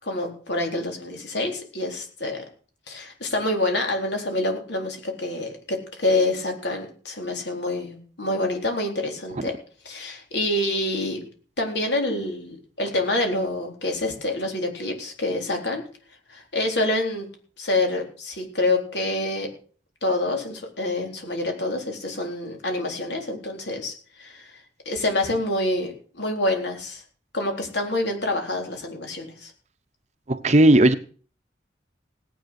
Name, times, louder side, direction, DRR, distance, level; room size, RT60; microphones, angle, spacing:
voice 1, 0.0-2.4 2.9-9.6 9.8-11.2 11.6-15.8 16.3-17.3 17.6-19.5 20.0-24.5 24.9-27.0 27.3-29.5, left 2 dB, 65° left, 3.9 m, -27 dB
voice 2, 30.3-30.9, right 1 dB, 35° right, 0.8 m, -15 dB
17.5 x 8.8 x 6.5 m
head